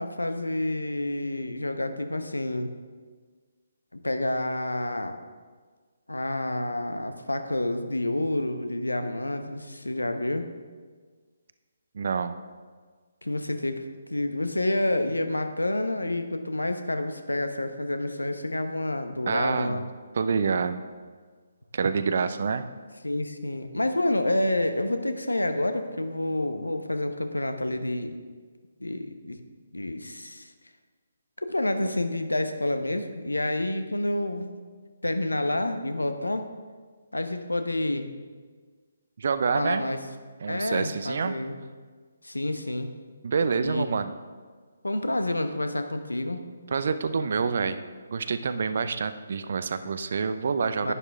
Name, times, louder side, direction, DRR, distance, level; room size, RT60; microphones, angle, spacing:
voice 1, 0.0-2.7 3.9-5.1 6.1-10.5 13.2-19.9 23.0-28.2 28.8-29.4 29.7-30.5 31.4-34.6 35.0-36.5 37.1-38.1 39.5-40.0 40.5-41.6 42.2-42.9 43.6-43.8 44.8-46.5 50.8-50.9, left 1 dB, 75° left, 8 dB, 0.9 m, -28 dB
voice 2, 11.9-12.4 19.2-19.8 20.1-20.8 21.7-22.7 39.2-39.8 40.4-41.4 43.2-44.1 46.7-47.8 48.1-50.9, right 5 dB, 50° right, 11 dB, 0.6 m, -27 dB
11.0 x 9.9 x 3.5 m, 1.5 s
figure-of-eight pair, 140°, 0 cm